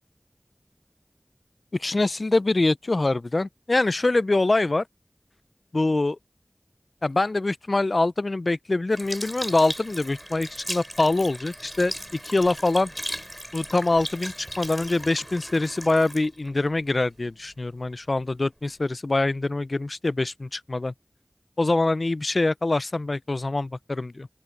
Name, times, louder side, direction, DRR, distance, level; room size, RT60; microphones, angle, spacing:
voice 1, 1.8-4.8 5.7-6.2 7.0-11.9 12.2-12.9 13.5-20.9 21.6-24.3, left 2 dB, 75° left, 0.3 m, -24 dB
Sink (filling or washing) / Liquid, 8.9-17.5 18.1-18.2, equal, 5° right, 6.2 m, -37 dB
open air
wide cardioid pair, 50°, 0 cm